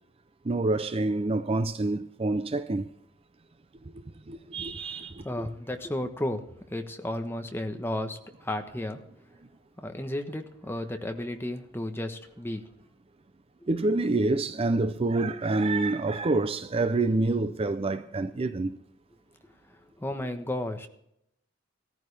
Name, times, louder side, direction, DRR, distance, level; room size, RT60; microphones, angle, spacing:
voice 1, 0.5-2.9 4.3-5.2 13.7-18.8, right 2 dB, 30° right, 0.5 m, -27 dB
voice 2, 5.2-6.4 6.7-9.0 9.8-12.6 20.0-20.9, left 1 dB, 10° left, 1.1 m, -33 dB
16.5 x 14.0 x 3.4 m
head